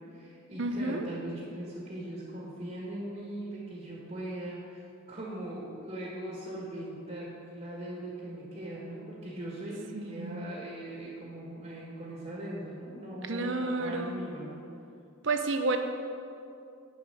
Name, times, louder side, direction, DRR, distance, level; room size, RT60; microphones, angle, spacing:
voice 1, 0.0-14.6, right 1 dB, 40° right, -5 dB, 1.9 m, -40 dB
voice 2, 0.6-1.1 9.9-10.5 13.3-14.2 15.2-15.8, right 3 dB, 65° right, 6 dB, 0.7 m, -31 dB
8.7 x 7.4 x 6.7 m, 2.6 s
head